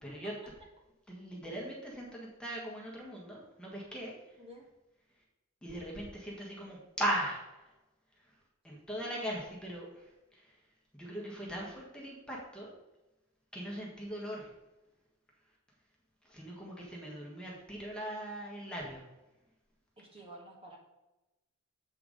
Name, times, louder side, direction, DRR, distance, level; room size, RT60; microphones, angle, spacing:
voice 1, 0.0-0.3 1.1-4.4 5.6-7.7 8.2-8.3 8.6-10.6 11.0-12.7 13.5-14.5 16.2-19.1, right 1 dB, 5° left, -3 dB, 1.6 m, -39 dB
voice 2, 20.0-20.8, right 1 dB, 25° right, -2 dB, 1.7 m, -51 dB
7.9 x 4.7 x 5.0 m, 1.0 s
head